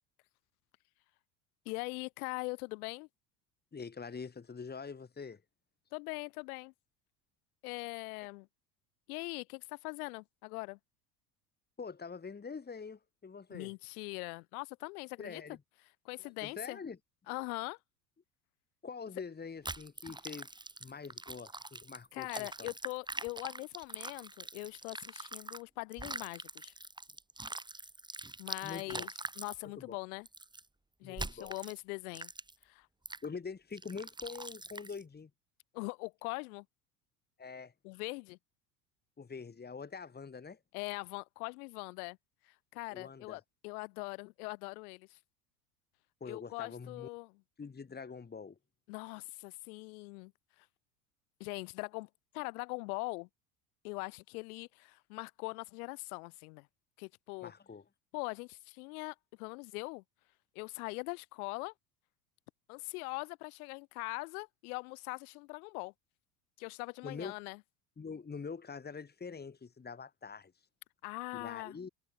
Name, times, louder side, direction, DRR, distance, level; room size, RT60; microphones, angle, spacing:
voice 1, 1.6-3.1 5.9-6.7 7.6-8.5 9.1-10.8 13.5-15.4 16.0-16.8 17.3-17.8 22.1-26.7 28.4-29.1 29.4-30.3 31.0-32.3 32.6-32.9 35.7-36.6 37.8-38.4 40.7-42.2 42.4-45.2 46.3-47.3 48.9-50.3 50.6-50.7 51.4-52.1 52.3-53.3 53.8-56.7 57.0-57.5 58.1-60.0 60.5-61.7 62.7-65.9 66.6-67.6 71.0-71.8, left 27 dB, 65° left, 3.2 m, -42 dB
voice 2, 3.7-5.4 11.8-13.7 15.2-15.6 16.2-17.0 18.8-20.5 20.8-22.7 28.6-29.1 29.6-30.0 31.0-31.6 33.2-35.3 37.4-37.7 39.2-40.6 42.9-43.4 46.2-47.1 47.6-48.6 57.4-57.8 67.0-67.4 68.0-70.5 71.3-71.9, left 5 dB, 20° left, 3.8 m, -45 dB
sound 1, 19.6-25.6 25.9-29.6 30.3-30.6 31.2-31.8 32.1-32.6 33.1-33.2 33.8-35.0, right 2 dB, 10° right, 3.4 m, -44 dB
hypercardioid pair, 80°, 48 cm